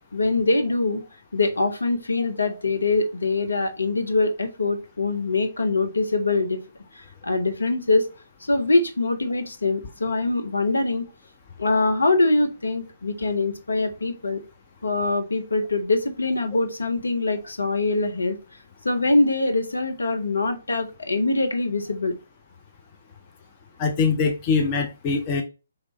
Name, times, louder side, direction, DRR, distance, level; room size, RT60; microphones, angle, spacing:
voice 1, 0.1-1.0 1.3-6.6 7.0-8.1 8.5-11.1 11.6-14.4 14.8-18.4 18.8-22.1, left 2 dB, 70° left, 7 dB, 0.9 m, -23 dB
voice 2, 23.8-25.4, left 5 dB, 30° left, 4 dB, 0.6 m, -23 dB
4.6 x 2.8 x 4.0 m, 0.30 s
figure-of-eight pair, 135°, 0 cm